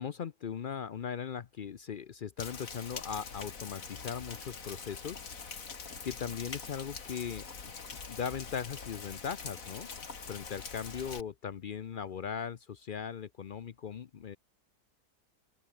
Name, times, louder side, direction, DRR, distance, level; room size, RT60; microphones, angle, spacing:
voice 1, 0.0-5.2 6.0-7.4 8.1-9.9 10.3-14.4, left 7 dB, 75° left, 0.4 m, -39 dB
Rain, 2.4-11.2, left 5 dB, 55° left, 2.5 m, -44 dB
open air
omnidirectional pair, 1.8 m